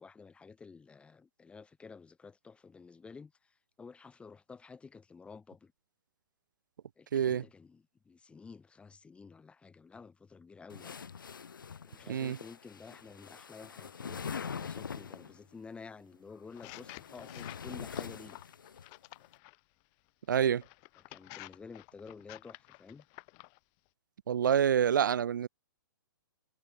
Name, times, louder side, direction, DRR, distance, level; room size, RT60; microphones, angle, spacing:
voice 1, 0.0-5.7 7.0-11.0 11.8-18.4 21.1-23.1, left 5 dB, 10° left, 2.5 m, -51 dB
voice 2, 7.1-7.4 12.1-12.4 20.3-20.6 24.3-25.5, right 8 dB, 65° right, 0.4 m, -27 dB
sound 1, 10.7-15.4 16.4-18.9, left 6 dB, 75° left, 0.8 m, -43 dB
sound 2, 16.5-19.6 20.3-23.6, left 40 dB or more, 30° left, 0.5 m, -51 dB
figure-of-eight pair, 120°, 11 cm